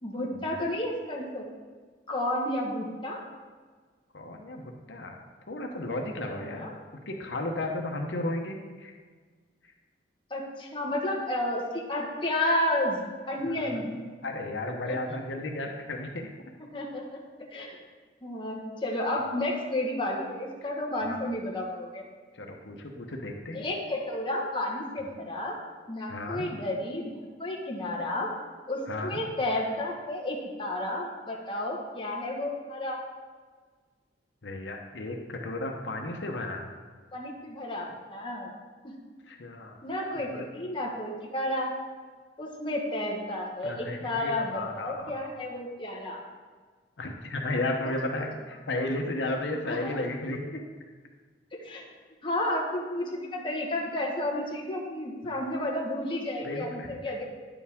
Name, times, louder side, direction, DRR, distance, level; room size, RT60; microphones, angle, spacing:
voice 1, 0.0-1.5 2.1-3.2 6.4-6.7 10.3-13.0 13.3-14.0 14.8-15.2 16.7-17.2 17.5-17.8 18.2-22.0 23.5-25.6 25.9-28.3 28.7-33.0 37.1-38.5 38.8-38.9 39.8-41.7 42.4-46.2 47.8-47.9 48.2-48.3 49.6-49.9 51.5-51.8 52.2-57.2, left 1 dB, 30° left, -1 dB, 1.3 m, -31 dB
voice 2, 4.1-5.2 5.5-6.7 7.1-8.9 13.4-13.8 14.2-16.3 20.6-20.7 21.1-21.3 22.3-23.6 26.1-26.5 28.9-29.2 34.4-36.7 39.3-39.8 40.3-40.4 43.6-45.1 47.0-50.6 55.2-55.3 56.4-56.9, left 2 dB, 85° left, 2 dB, 0.9 m, -34 dB
9.7 x 7.1 x 3.6 m, 1.5 s
head